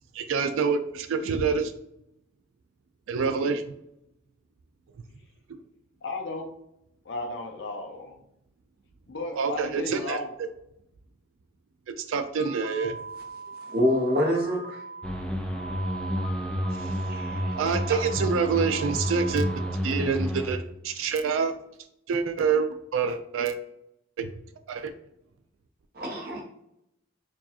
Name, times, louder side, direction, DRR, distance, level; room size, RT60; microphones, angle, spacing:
voice 1, 0.1-1.7 3.1-3.6 9.4-10.2 12.1-13.0 16.8-16.9 17.5-19.5 19.8-21.6 22.1-23.6 24.2-24.3 24.7-24.9, right 5 dB, 85° right, 8 dB, 0.4 m, -26 dB
voice 2, 6.0-6.5 7.1-8.2 9.1-10.3, left 2 dB, 65° left, 3 dB, 0.6 m, -34 dB
sound 1, 12.4-19.7, right 3 dB, 90° left, 1.1 m, -40 dB
voice 3, 13.6-14.8 17.1-17.6 17.9-18.0 25.9-26.4, equal, 50° right, 0 dB, 0.9 m, -26 dB
sound 2, 15.0-20.5, equal, 5° left, 0.3 m, -30 dB
4.5 x 2.4 x 2.8 m, 0.78 s
head